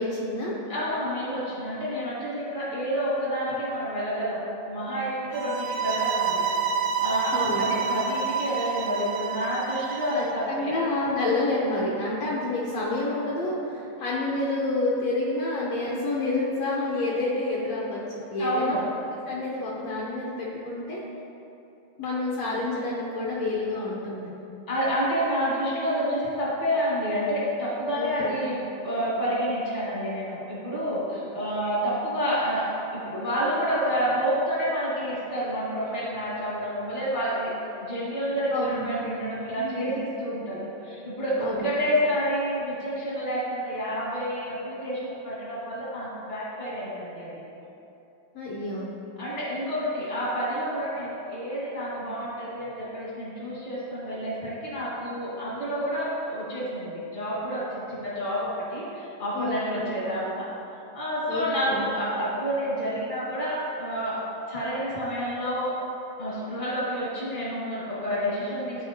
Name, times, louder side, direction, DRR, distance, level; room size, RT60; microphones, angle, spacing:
voice 1, 0.0-0.6 7.3-7.7 10.1-18.0 18.3-18.8 19.3-21.0 22.0-24.3 27.9-28.3 38.5-38.8 39.6-40.0 41.4-41.7 48.3-48.9 59.3-59.9 61.3-61.9, left 2 dB, 80° left, -5 dB, 1.5 m, -29 dB
voice 2, 0.7-4.4 4.6-6.5 7.0-10.7 18.4-18.8 24.7-37.5 37.8-47.3 49.2-60.5 60.9-64.2 64.5-65.7 66.2-68.9, equal, 45° left, -8 dB, 0.7 m, -29 dB
sound 1, 5.3-10.3, right 6 dB, 80° right, 1.9 m, -28 dB
12.0 x 4.3 x 2.8 m, 2.8 s
omnidirectional pair, 3.9 m